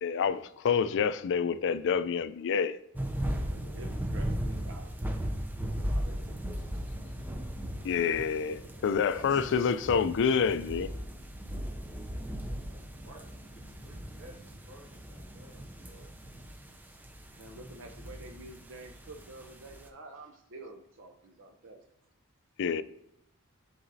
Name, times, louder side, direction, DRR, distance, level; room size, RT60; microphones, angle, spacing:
voice 1, 0.0-2.8 7.8-10.9 22.6-22.8, left 6 dB, 55° left, 0.4 m, -28 dB
sound 1, 2.9-19.9, equal, 10° right, 0.5 m, -37 dB
voice 2, 3.5-5.3 16.5-16.7 17.3-21.8, right 2 dB, 60° right, 0.6 m, -49 dB
voice 3, 5.8-6.9 9.1-9.7 12.7-16.1, right 1 dB, 85° right, 1.9 m, -52 dB
10.0 x 3.9 x 2.7 m
head